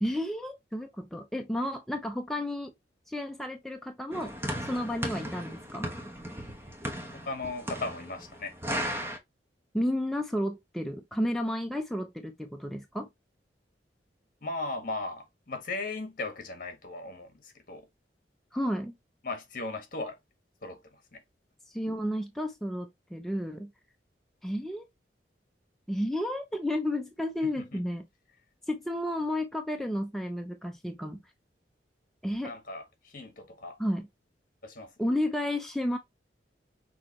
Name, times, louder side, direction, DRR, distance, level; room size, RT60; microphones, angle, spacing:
voice 1, 0.0-2.7 3.1-4.3 4.7-5.9 9.7-13.1 18.5-18.9 21.7-23.7 24.4-24.8 25.9-28.1 28.7-31.2 32.2-32.5 33.8-34.1 35.0-36.0, left 1 dB, ahead, 0.6 m, -32 dB
sound 1, 4.1-9.2, equal, 15° right, 1.1 m, -36 dB
voice 2, 7.1-8.5 14.4-17.9 19.2-20.2 20.6-21.2 27.6-27.8 32.4-33.8 34.6-34.9, left 3 dB, 50° left, 1.6 m, -37 dB
6.2 x 2.9 x 2.9 m
head